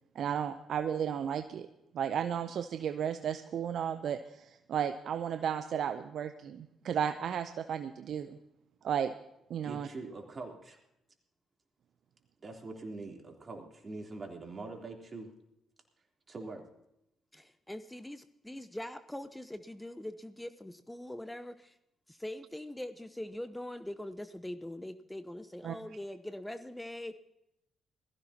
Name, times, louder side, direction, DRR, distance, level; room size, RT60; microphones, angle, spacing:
voice 1, 0.1-1.7 1.9-8.4 8.8-9.1 9.5-9.9 25.6-25.8, right 8 dB, 65° right, 10 dB, 0.6 m, -34 dB
voice 2, 9.6-10.8 12.4-15.3 16.3-16.7, right 3 dB, 40° right, 1 dB, 3.4 m, -43 dB
voice 3, 17.3-21.7 22.1-27.2, left 1 dB, 10° left, 11 dB, 0.9 m, -42 dB
20.5 x 15.5 x 2.9 m, 0.83 s
hypercardioid pair, 45°, 0 cm